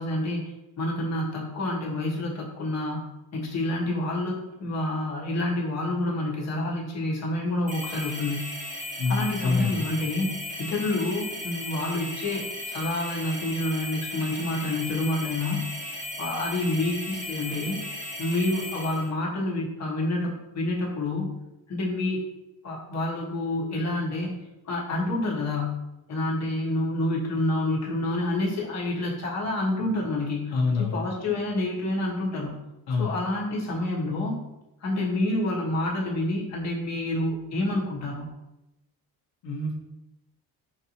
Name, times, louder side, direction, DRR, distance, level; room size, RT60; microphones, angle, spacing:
voice 1, 0.0-3.0 3.3-8.5 9.1-10.3 10.6-15.7 16.2-17.8 18.2-21.3 21.7-22.2 22.6-24.3 24.7-25.8 26.1-32.6 33.0-34.4 34.8-38.2, left 1 dB, 45° left, -3 dB, 1.1 m, -28 dB
sound 1, 7.7-19.1, left 1 dB, 20° right, 1.1 m, -36 dB
voice 2, 9.0-9.8 30.5-31.1 32.9-33.2 39.4-39.7, left 4 dB, 80° left, -2 dB, 0.8 m, -26 dB
5.1 x 2.7 x 2.9 m, 0.94 s
cardioid pair, 130°, 36 cm